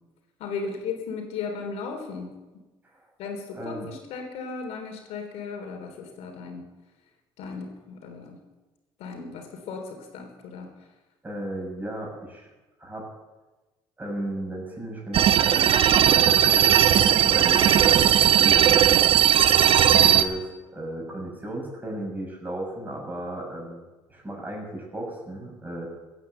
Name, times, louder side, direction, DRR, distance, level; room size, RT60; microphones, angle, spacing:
voice 1, 0.4-2.4 3.2-6.7 7.4-8.4 9.0-10.7, left 5 dB, 80° left, 4 dB, 3.5 m, -36 dB
voice 2, 3.5-3.9 11.2-12.5 12.8-13.1 14.0-19.1 20.0-23.8 24.1-25.9, right 1 dB, 15° right, -1 dB, 6.9 m, -35 dB
sound 1, 15.1-20.2, right 10 dB, 60° right, 0.9 m, -18 dB
16.5 x 9.8 x 8.0 m, 1.2 s
cardioid pair, 105°, 10 cm